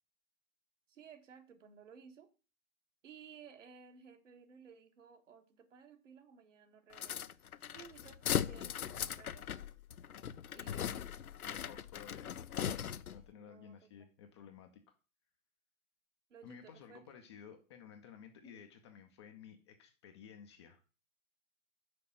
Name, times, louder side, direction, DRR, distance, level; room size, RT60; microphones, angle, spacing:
voice 1, 0.9-2.3 3.0-7.2 7.7-9.6 10.5-10.9 13.3-13.8 16.3-17.2 18.4-18.6, right 6 dB, 60° right, 6 dB, 1.5 m, -57 dB
sound 1, 6.9-13.3, left 9 dB, 80° left, 0.5 m, -39 dB
voice 2, 11.4-12.3 13.1-15.0 16.4-20.8, left 8 dB, 20° left, 5 dB, 0.5 m, -54 dB
6.0 x 5.0 x 6.2 m, 0.35 s
figure-of-eight pair, 110°, 43 cm